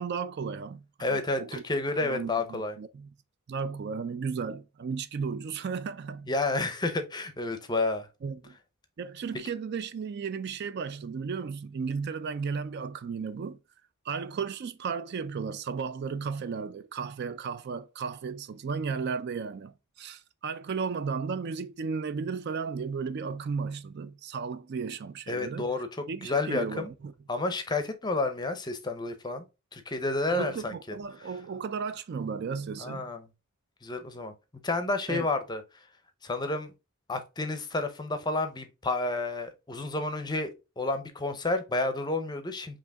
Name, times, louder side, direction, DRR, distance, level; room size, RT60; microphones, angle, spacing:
voice 1, 0.0-1.6 2.0-3.1 3.5-6.3 8.2-8.6 9.0-13.6 14.0-25.7 26.1-27.1 30.3-33.1 35.1-35.3, right 5 dB, 50° right, 0.4 m, -34 dB
voice 2, 1.0-2.7 6.3-8.1 25.3-25.9 26.2-26.9 27.3-29.4 29.7-31.0 32.8-33.2 33.8-34.3 34.6-35.6 36.2-36.7 37.1-42.8, left 2 dB, 20° left, 0.6 m, -30 dB
5.0 x 2.9 x 3.4 m
head